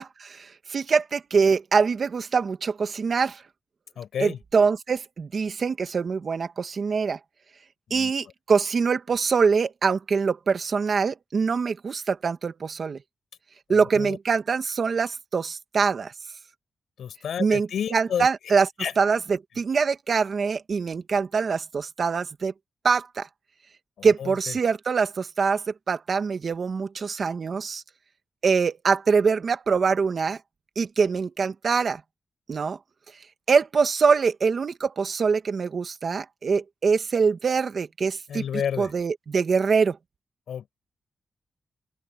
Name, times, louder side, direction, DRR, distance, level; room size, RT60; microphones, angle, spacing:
voice 1, 0.0-3.4 4.2-7.2 7.9-13.0 13.7-16.1 17.4-18.7 19.0-22.5 22.8-23.3 24.0-27.8 28.4-30.4 30.7-32.0 32.5-32.8 33.5-38.4 38.8-40.0, right 5 dB, 50° right, 1.6 m, -24 dB
voice 2, 4.0-4.4 7.9-8.1 13.7-14.2 17.0-18.3 18.8-18.9 24.0-24.5 38.3-38.9 40.5-40.7, left 8 dB, 90° left, 4.6 m, -31 dB
open air
wide cardioid pair, 125°, 0 cm